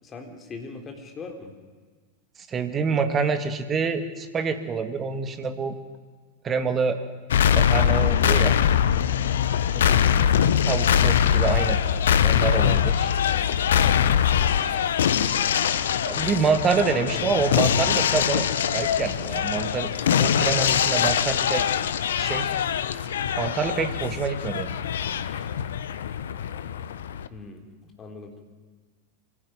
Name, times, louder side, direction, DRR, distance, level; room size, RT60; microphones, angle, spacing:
voice 1, 0.0-1.5 9.7-10.3 13.3-13.5 13.8-14.7 17.0-17.4 27.3-28.3, left 4 dB, 25° left, 3 dB, 3.9 m, -41 dB
voice 2, 2.5-5.7 6.4-7.0 7.5-8.6 10.7-11.8 12.2-13.1 16.1-19.9 20.2-21.7 22.2-22.5 23.4-24.7, right 5 dB, 25° right, 8 dB, 2.2 m, -26 dB
sound 1, 7.3-27.3, left 9 dB, 60° left, 1.0 m, -23 dB
24.5 x 17.0 x 9.5 m, 1.4 s
figure-of-eight pair, 90°, 0 cm